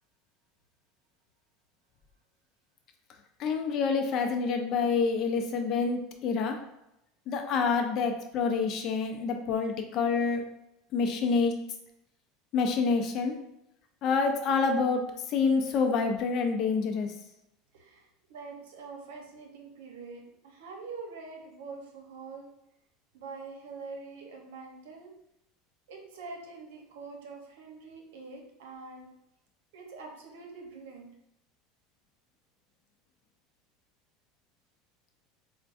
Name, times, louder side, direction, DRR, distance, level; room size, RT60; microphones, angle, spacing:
voice 1, 3.4-6.6 7.3-10.4 10.9-11.5 12.5-13.4 14.0-15.0 15.3-17.1, left 5 dB, 45° left, 4 dB, 0.5 m, -27 dB
voice 2, 17.7-22.5 23.1-25.1 25.9-29.1 29.7-31.1, right 4 dB, 85° right, 1 dB, 0.8 m, -45 dB
4.5 x 2.2 x 2.5 m, 0.83 s
supercardioid pair, 130°, 0 cm